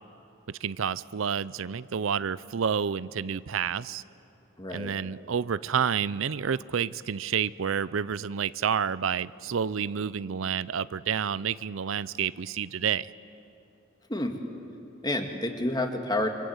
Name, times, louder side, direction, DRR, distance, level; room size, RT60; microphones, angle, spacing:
voice 1, 0.5-4.0 4.7-13.1, right 7 dB, 85° right, 18 dB, 0.5 m, -29 dB
voice 2, 4.6-4.9 14.1-14.4 15.0-16.3, left 1 dB, 20° left, 4 dB, 2.1 m, -29 dB
28.5 x 24.5 x 8.0 m, 2.8 s
head